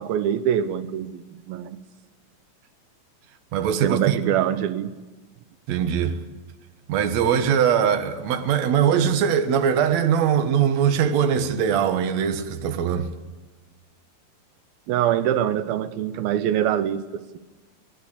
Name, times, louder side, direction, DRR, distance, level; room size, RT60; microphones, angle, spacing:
voice 1, 0.0-1.8 3.8-4.9 14.9-17.2, right 10 dB, 85° right, 2.7 m, -24 dB
voice 2, 3.5-4.2 5.7-6.2 6.9-13.1, right 8 dB, 60° right, 2.3 m, -21 dB
23.5 x 18.0 x 8.4 m
omnidirectional pair, 4.2 m